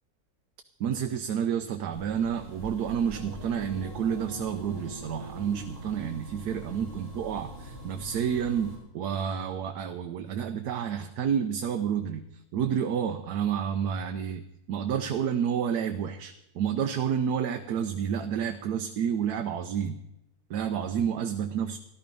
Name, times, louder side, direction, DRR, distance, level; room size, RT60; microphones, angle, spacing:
voice 1, 0.8-12.3 12.5-20.0 20.5-21.8, right 8 dB, 85° right, 6 dB, 1.3 m, -30 dB
sound 1, 1.9-8.7, equal, 50° left, 4.7 m, -44 dB
sound 2, 3.0-7.5, right 3 dB, 35° right, 1.7 m, -45 dB
14.5 x 12.5 x 5.3 m, 0.86 s
omnidirectional pair, 1.6 m